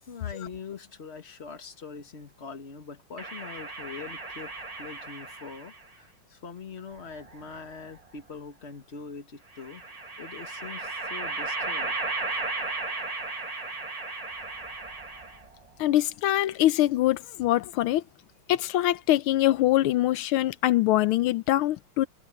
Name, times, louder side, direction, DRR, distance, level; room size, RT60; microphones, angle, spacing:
voice 1, 0.0-9.8 10.2-12.0, left 5 dB, 30° left, 1.9 m, -43 dB
sound 1, 3.2-5.8 7.0-8.0 9.6-15.6, right 3 dB, 20° right, 1.4 m, -35 dB
voice 2, 15.8-18.0 18.5-22.1, left 14 dB, 85° left, 1.5 m, -23 dB
omnidirectional pair, 2.3 m